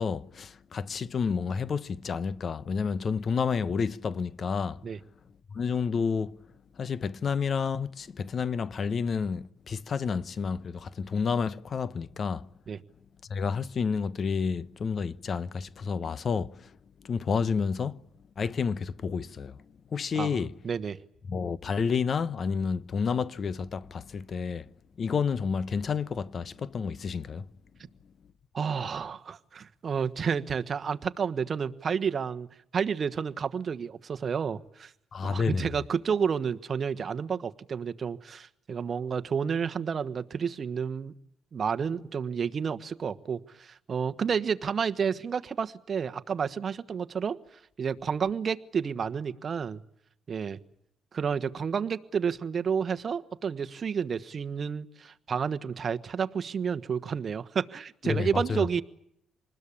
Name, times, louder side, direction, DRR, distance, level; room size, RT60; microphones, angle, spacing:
voice 1, 0.0-4.8 5.5-6.4 6.8-12.5 13.3-16.7 17.0-18.0 18.4-19.6 19.9-20.5 21.3-24.7 25.0-27.5 35.1-35.7 58.0-58.8, left 5 dB, 50° left, 1.0 m, -30 dB
voice 2, 20.1-21.0 28.5-32.5 32.7-34.9 35.2-41.1 41.5-47.4 47.8-49.8 50.3-50.6 51.1-58.8, right 6 dB, 45° right, 1.3 m, -30 dB
26.5 x 20.5 x 8.7 m
cardioid pair, 90°, 0 cm